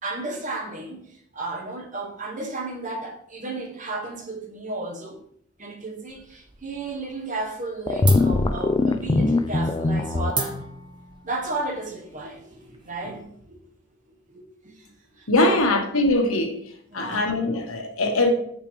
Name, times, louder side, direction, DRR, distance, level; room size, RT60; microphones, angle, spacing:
voice 1, 0.0-1.0 1.3-5.2 5.6-10.6 11.2-13.6 14.3-14.7 15.2-15.6 16.9-17.2, right 2 dB, 40° right, 1.2 m, -33 dB
sound 1, 6.1-7.0 7.3-7.7 8.0-13.2, right 3 dB, 20° right, 0.9 m, -35 dB
sound 2, 7.9-10.3, left 3 dB, 20° left, 0.3 m, -21 dB
voice 2, 15.3-16.6 16.9-18.3, left 2 dB, 90° left, 1.3 m, -21 dB
6.7 x 6.4 x 3.3 m
head